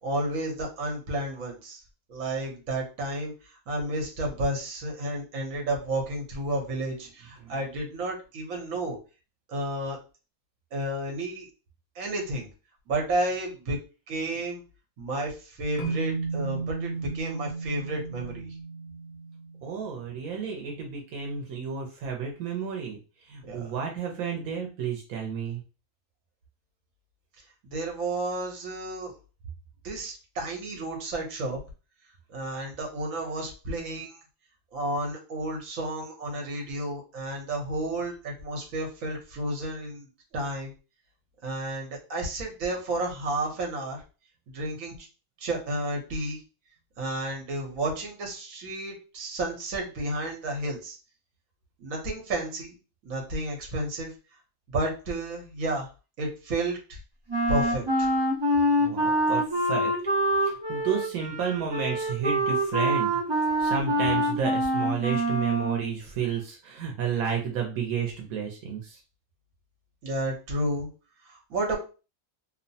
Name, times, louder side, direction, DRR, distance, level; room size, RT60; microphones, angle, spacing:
voice 1, 0.0-1.8 2.1-3.3 3.7-9.0 9.5-10.0 10.7-11.5 11.9-12.5 12.9-13.8 14.1-14.6 15.0-18.5 23.4-23.6 27.7-29.1 29.8-31.6 32.3-34.2 34.7-40.1 40.3-40.7 41.4-44.0 44.5-45.1 45.4-46.4 47.0-51.0 51.8-52.8 53.0-54.1 54.7-55.9 56.2-57.0 57.5-58.1 70.0-70.9 71.2-71.8, right 1 dB, 70° right, 0 dB, 1.2 m, -31 dB
sound 1, 15.8-20.1, right 4 dB, 45° left, 0.6 m, -34 dB
voice 2, 19.6-25.6 58.8-60.0 60.4-63.1 63.6-69.0, right 6 dB, 90° right, 2 dB, 1.1 m, -31 dB
Wind instrument woodwind instrument, 57.3-65.9, right 1 dB, 25° right, 0.6 m, -25 dB
2.8 x 2.1 x 2.7 m, 0.33 s
omnidirectional pair, 1.5 m